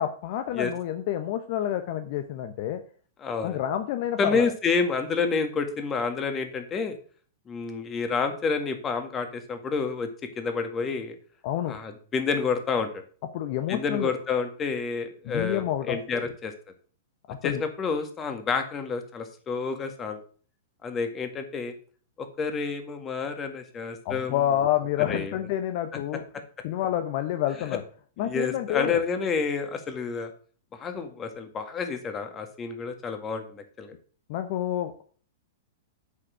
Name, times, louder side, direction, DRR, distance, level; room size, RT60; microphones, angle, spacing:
voice 1, 0.0-2.8 3.4-4.5 11.4-11.8 13.3-14.1 15.3-16.2 17.3-17.6 24.0-26.2 26.6-27.8 28.2-29.0 34.3-35.0, left 11 dB, 55° left, 8 dB, 0.8 m, -28 dB
voice 2, 3.2-3.6 4.2-7.0 7.5-10.1 10.4-11.2 11.7-13.0 13.7-16.5 17.4-20.2 20.8-21.7 22.2-24.4 25.1-25.4 28.2-30.3 30.8-33.9, left 5 dB, 25° left, 7 dB, 1.8 m, -29 dB
8.3 x 5.0 x 6.2 m, 0.43 s
hypercardioid pair, 115°, 0 cm